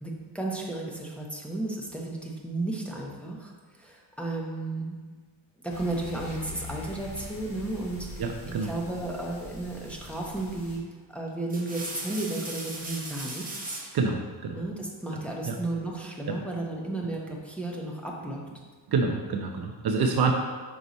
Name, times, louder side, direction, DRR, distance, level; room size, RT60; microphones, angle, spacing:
voice 1, 0.0-5.0 5.6-8.2 8.6-10.8 11.1-13.8 14.5-18.4, right 2 dB, 5° left, -2 dB, 1.0 m, -33 dB
sound 1, 5.7-10.8, left 2 dB, 65° left, 1.9 m, -43 dB
voice 2, 8.2-8.7 13.9-14.6 15.4-15.6 16.3-16.4 18.9-20.3, right 4 dB, 50° right, 3 dB, 0.7 m, -27 dB
sound 2, 10.4-10.7 11.3-14.0 15.5-16.1, right 2 dB, 20° right, 1.2 m, -39 dB
5.4 x 4.9 x 4.1 m, 1.5 s
cardioid pair, 105°, 48 cm